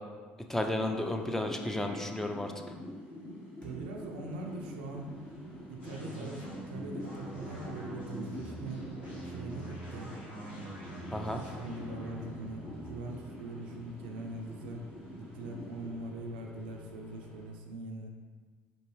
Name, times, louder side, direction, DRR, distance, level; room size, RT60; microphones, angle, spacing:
voice 1, 0.5-2.5 11.1-11.4, left 1 dB, 10° left, 4 dB, 0.4 m, -32 dB
sound 1, 0.8-15.9, left 1 dB, 45° left, 1.3 m, -46 dB
sound 2, 1.6-2.1 3.6-17.5, right 1 dB, 25° left, 1.4 m, -53 dB
voice 2, 3.6-5.1 5.7-8.8 9.2-10.1 10.5-10.8 11.2-14.9 15.2-18.1, right 2 dB, 80° right, 2 dB, 0.4 m, -42 dB
sound 3, 5.8-15.2, right 1 dB, 85° left, 0.9 m, -46 dB
4.4 x 2.6 x 3.0 m, 1.5 s
hypercardioid pair, 60°, 5 cm